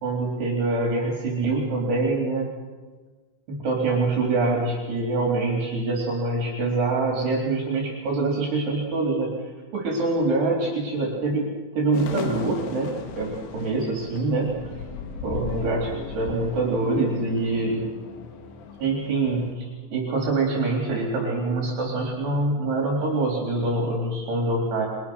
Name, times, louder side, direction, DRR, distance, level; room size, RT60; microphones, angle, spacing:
voice 1, 0.0-2.5 3.5-9.3 9.7-11.5 11.7-14.5 15.2-17.9 18.8-24.9, right 2 dB, 65° right, -1 dB, 5.6 m, -25 dB
sound 1, 11.9-19.5, left 5 dB, 65° left, 3.8 m, -37 dB
29.0 x 23.0 x 6.3 m, 1.3 s
omnidirectional pair, 5.3 m